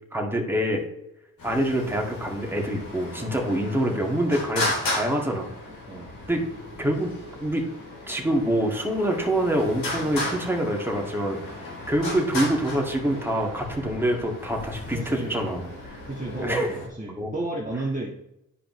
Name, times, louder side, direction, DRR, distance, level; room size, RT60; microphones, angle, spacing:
voice 1, 0.1-0.8 1.4-5.5 6.3-6.4 6.8-7.1 7.4-7.6 8.1-16.0 16.3-16.7 17.2-17.3, right 1 dB, 5° right, 0 dB, 2.0 m, -26 dB
Traffic noise roadway noise, 1.4-16.9, left 2 dB, 65° left, 3.0 m, -35 dB
voice 2, 14.9-15.5 16.0-18.1, right 2 dB, 20° right, -3 dB, 1.5 m, -32 dB
10.0 x 5.0 x 3.1 m, 0.84 s
supercardioid pair, 50°, 36 cm